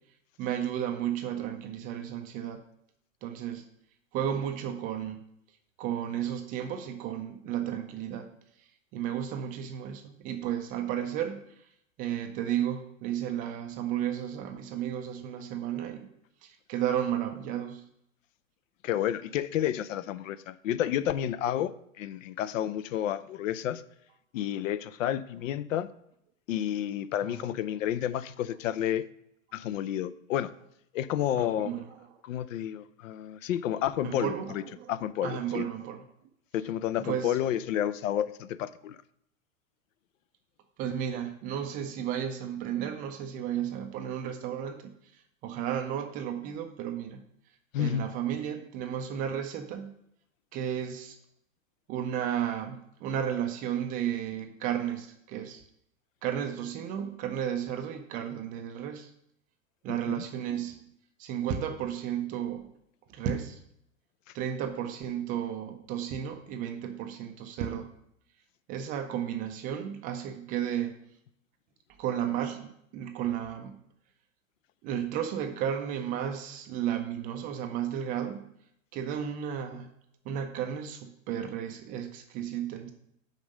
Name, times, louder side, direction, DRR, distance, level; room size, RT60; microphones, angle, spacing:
voice 1, 0.4-2.6 3.2-3.6 4.1-5.2 5.8-8.3 8.9-11.6 12.0-16.1 16.4-17.8 27.2-27.5 31.4-31.9 34.0-34.9 35.2-36.0 37.0-37.4 40.8-44.8 45.1-47.2 47.8-49.9 50.5-51.2 51.9-55.6 56.2-59.1 59.8-60.8 61.2-62.7 63.1-63.6 64.3-67.9 68.7-71.0 72.0-73.8 74.8-78.5 78.9-79.9 80.3-82.9, right 9 dB, 20° right, 7 dB, 0.4 m, -33 dB
voice 2, 18.8-23.8 24.3-25.9 26.5-29.1 29.5-30.5 30.9-31.7 32.2-34.6 34.9-35.6 36.5-39.0 47.7-48.0 59.9-60.2, left 11 dB, 70° left, 15 dB, 0.6 m, -30 dB
5.3 x 5.1 x 6.4 m, 0.75 s
hypercardioid pair, 130°, 41 cm